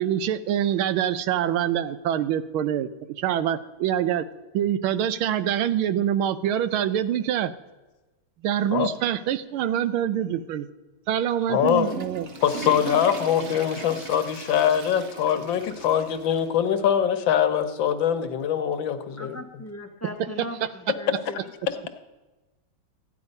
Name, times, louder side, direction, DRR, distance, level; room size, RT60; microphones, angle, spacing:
voice 1, 0.0-2.9 3.2-4.2 4.5-7.5 8.4-10.7 11.1-12.3 20.2-20.3 20.6-20.7, right 10 dB, 90° right, 13 dB, 1.5 m, -25 dB
voice 2, 11.5-11.9 12.4-19.6 21.7-21.8, left 9 dB, 70° left, 8 dB, 1.6 m, -23 dB
Water / Toilet flush, 11.5-16.5 16.8-16.9 17.6-17.7 19.0-19.1, right 3 dB, 45° right, 1.0 m, -38 dB
voice 3, 19.2-21.4, equal, 10° left, 2 dB, 0.8 m, -38 dB
13.5 x 9.9 x 5.3 m, 1.2 s
omnidirectional pair, 2.2 m